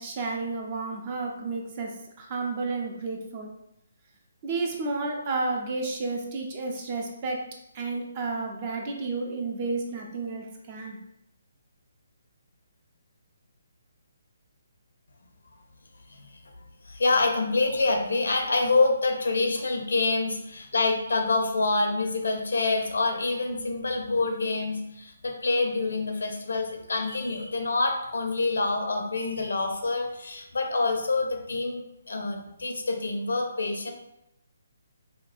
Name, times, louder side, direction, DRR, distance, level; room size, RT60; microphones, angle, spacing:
voice 1, 0.0-1.9 2.2-3.5 4.4-7.4 7.7-11.0, right 3 dB, 30° right, 1 dB, 0.6 m, -31 dB
voice 2, 16.8-33.9, left 3 dB, 65° left, 3 dB, 0.6 m, -26 dB
5.1 x 2.3 x 2.5 m, 0.81 s
figure-of-eight pair, 135°, 0 cm